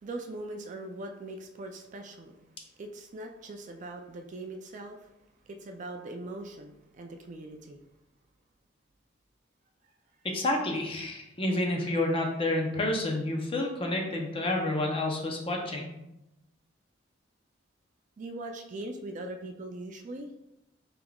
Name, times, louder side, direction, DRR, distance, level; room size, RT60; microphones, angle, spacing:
voice 1, 0.0-2.4 2.8-5.1 5.5-7.8 18.2-20.3, right 2 dB, 40° right, 4 dB, 0.3 m, -41 dB
voice 2, 10.2-15.9, left 1 dB, 30° left, 1 dB, 0.6 m, -29 dB
4.8 x 3.5 x 2.3 m, 0.90 s
head